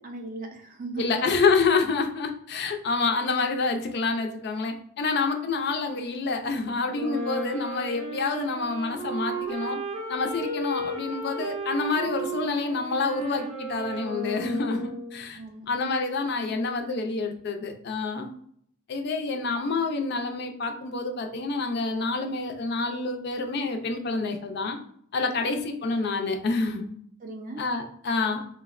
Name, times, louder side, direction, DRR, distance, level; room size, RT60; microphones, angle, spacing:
voice 1, 0.0-1.2 15.3-15.7 16.3-16.6 25.4-25.6 27.2-27.7, right 3 dB, 35° right, 4 dB, 0.4 m, -38 dB
voice 2, 1.0-9.8 10.1-15.4 15.7-18.3 18.9-24.8 25.1-26.9 27.6-28.4, left 4 dB, 50° left, 5 dB, 0.3 m, -27 dB
Wind instrument woodwind instrument, 6.9-15.3, right 2 dB, 85° right, 0.8 m, -34 dB
3.4 x 2.0 x 2.3 m, 0.65 s
head